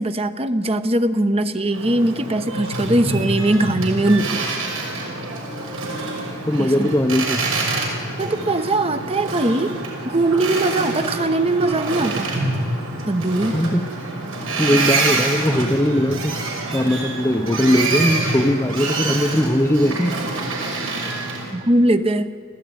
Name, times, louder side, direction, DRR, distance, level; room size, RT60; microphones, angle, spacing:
voice 1, 0.0-4.6 6.6-7.0 8.2-9.8 10.0-12.3 13.1-13.5 21.5-22.3, right 1 dB, 30° right, 9 dB, 1.0 m, -20 dB
Boat Water vehicle, 1.7-21.5, right 2 dB, 80° right, 5.9 m, -26 dB
voice 2, 6.5-7.4 13.5-13.8 14.6-16.4 16.7-20.2, equal, 10° left, 8 dB, 0.7 m, -19 dB
29.5 x 15.5 x 9.6 m, 2.1 s
head